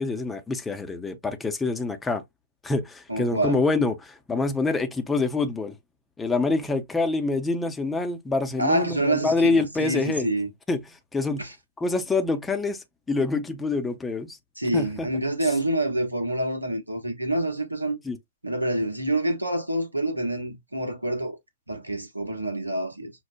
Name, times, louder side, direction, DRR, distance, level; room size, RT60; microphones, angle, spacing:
voice 1, 0.0-2.2 2.6-5.7 6.2-10.3 10.7-10.8 11.1-11.5 11.8-14.4 14.7-15.1 18.0-18.2, left 3 dB, 10° left, 0.5 m, -26 dB
voice 2, 3.1-3.6 8.6-10.5 11.4-11.5 14.6-18.0 18.4-21.4 21.7-23.1, right 1 dB, 85° right, 0.8 m, -27 dB
6.0 x 2.1 x 2.5 m
figure-of-eight pair, 110°, 0 cm